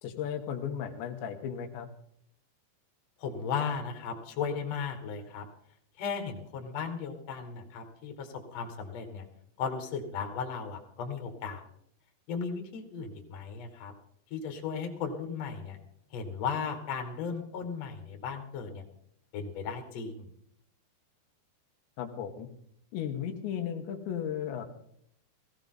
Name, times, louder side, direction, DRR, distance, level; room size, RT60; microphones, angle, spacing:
voice 1, 0.0-1.9 22.0-22.5 22.9-24.7, left 8 dB, 85° left, 4 dB, 3.5 m, -35 dB
voice 2, 3.2-5.4 6.0-9.2 9.6-11.6 12.3-13.9 14.3-15.8 16.1-18.8 19.3-20.3, left 6 dB, 50° left, 4 dB, 2.3 m, -36 dB
17.5 x 15.5 x 3.9 m, 0.68 s
omnidirectional pair, 5.0 m